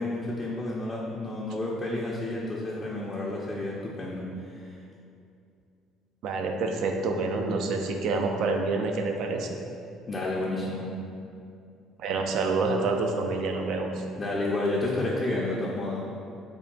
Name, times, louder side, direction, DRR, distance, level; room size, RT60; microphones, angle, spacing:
voice 1, 0.0-4.3 4.5-4.7 10.1-10.9 14.2-16.0, left 2 dB, 30° left, -5 dB, 0.5 m, -30 dB
voice 2, 6.2-9.6 12.0-14.0, right 3 dB, 65° right, 3 dB, 0.4 m, -27 dB
3.5 x 2.3 x 3.7 m, 2.5 s
hypercardioid pair, 65°, 0 cm